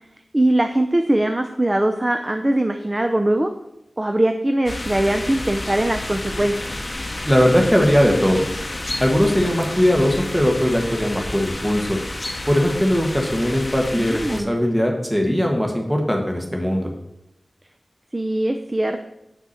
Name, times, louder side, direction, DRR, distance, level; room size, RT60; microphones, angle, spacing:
voice 1, 0.3-3.5 4.0-6.7 13.9-14.6 18.1-19.1, right 1 dB, 25° right, 6 dB, 0.5 m, -21 dB
sound 1, 4.7-14.4, left 2 dB, 35° left, 0.8 m, -30 dB
voice 2, 7.3-8.5 9.0-12.0 12.5-16.9, equal, 5° right, 1 dB, 1.4 m, -19 dB
8.3 x 5.9 x 4.3 m, 0.85 s
wide cardioid pair, 80°, 0 cm